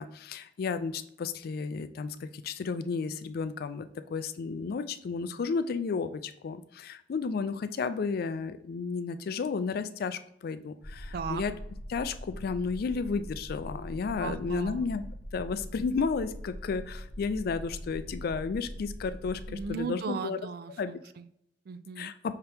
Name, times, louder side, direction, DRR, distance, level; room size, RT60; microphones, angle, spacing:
voice 1, 0.0-11.5 11.9-15.0 15.3-20.4 20.8-20.9 22.0-22.1, left 5 dB, 55° left, 11 dB, 0.3 m, -33 dB
sound 1, 10.8-19.7, equal, 25° left, 0.8 m, -42 dB
voice 2, 11.1-11.4 14.2-14.8 19.5-21.3 21.7-22.1, right 5 dB, 55° right, 13 dB, 0.3 m, -37 dB
5.5 x 2.9 x 3.4 m, 0.75 s
head